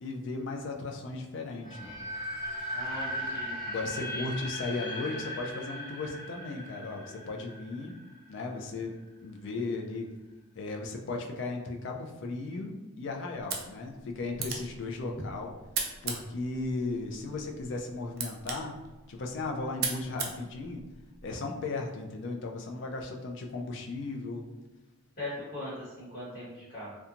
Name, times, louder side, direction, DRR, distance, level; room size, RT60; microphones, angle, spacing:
voice 1, 0.0-1.9 3.6-7.9 8.3-10.1 10.6-15.5 16.0-18.8 19.1-20.8 21.2-24.4, left 3 dB, 55° left, 2 dB, 0.3 m, -36 dB
sound 1, 1.6-8.5, equal, 20° left, 0.6 m, -38 dB
voice 2, 2.7-3.5 3.9-4.2 25.2-27.0, left 1 dB, 40° left, -10 dB, 1.1 m, -40 dB
sound 2, 13.3-21.3, right 5 dB, 45° right, 0.3 m, -39 dB
2.8 x 2.2 x 2.5 m, 1.1 s
head